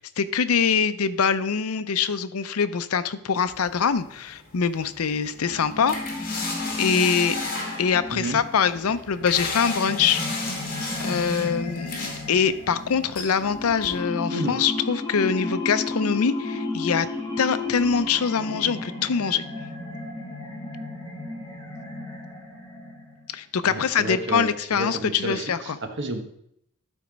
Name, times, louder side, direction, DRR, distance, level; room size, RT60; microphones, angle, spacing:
voice 1, 0.2-6.4 6.8-7.4 7.8-10.2 11.0-17.1 17.4-19.4 23.3-25.7, left 6 dB, 85° left, 12 dB, 0.6 m, -24 dB
sound 1, 3.5-14.0, left 3 dB, 45° left, 2.3 m, -35 dB
sound 2, 5.4-23.3, left 2 dB, 15° left, 1.7 m, -34 dB
voice 2, 23.6-26.2, right 2 dB, 55° right, 6 dB, 1.2 m, -31 dB
11.5 x 4.4 x 5.1 m, 0.73 s
head